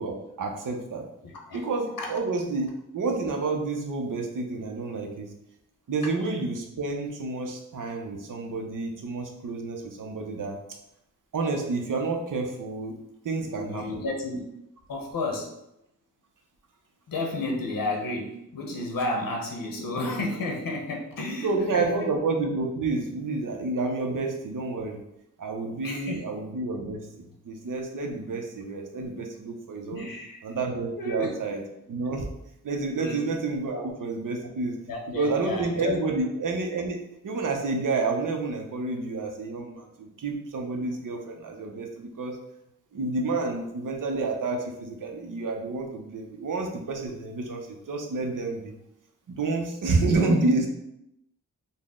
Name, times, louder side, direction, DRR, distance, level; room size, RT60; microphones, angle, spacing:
voice 1, 0.0-1.0 1.5-5.3 5.9-10.6 11.3-12.9 13.2-13.8 21.4-25.0 25.4-30.1 30.4-31.6 31.9-32.3 32.6-34.8 35.1-37.0 37.2-42.4 42.9-48.7 49.3-50.7, right 3 dB, 65° right, 2 dB, 0.7 m, -29 dB
voice 2, 1.2-1.6 2.0-2.1 13.4-14.5 14.9-15.5 17.1-21.9 24.0-24.1 25.8-26.2 29.9-30.4 30.9-31.3 33.0-33.2 33.7-33.9 34.9-35.9, left 2 dB, 75° left, 0 dB, 0.8 m, -32 dB
4.0 x 2.1 x 3.6 m, 0.82 s
wide cardioid pair, 120°, 34 cm